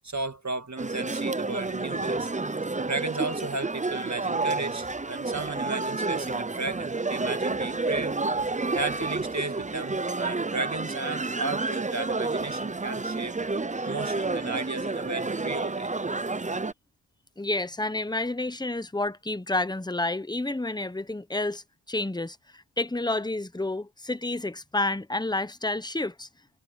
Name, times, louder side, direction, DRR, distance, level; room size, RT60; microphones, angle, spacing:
voice 1, 0.0-2.3 2.8-8.5 8.7-13.3 13.8-15.9, right 3 dB, 35° right, 1.8 m, -34 dB
sound 1, 0.8-16.7, right 3 dB, 15° right, 0.6 m, -30 dB
voice 2, 17.4-26.3, left 2 dB, 10° left, 1.0 m, -30 dB
wide cardioid pair, 75°, 47 cm